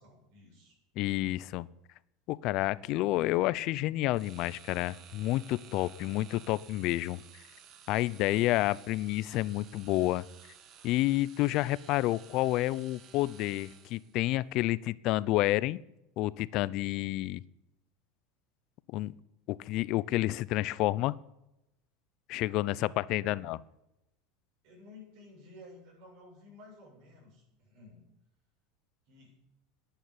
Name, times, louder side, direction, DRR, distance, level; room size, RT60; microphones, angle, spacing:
voice 1, 0.0-0.8 23.0-23.4 24.6-28.1 29.1-29.4, left 2 dB, 65° right, -2 dB, 7.5 m, -54 dB
voice 2, 1.0-1.7 2.3-7.2 7.9-10.2 10.8-15.8 16.2-17.4 18.9-19.1 19.5-21.2 22.3-23.6, left 17 dB, 55° left, 19 dB, 0.6 m, -29 dB
sound 1, 4.1-14.2, right 8 dB, 45° right, 1.6 m, -55 dB
11.0 x 9.2 x 9.9 m, 0.88 s
supercardioid pair, 115°, 0 cm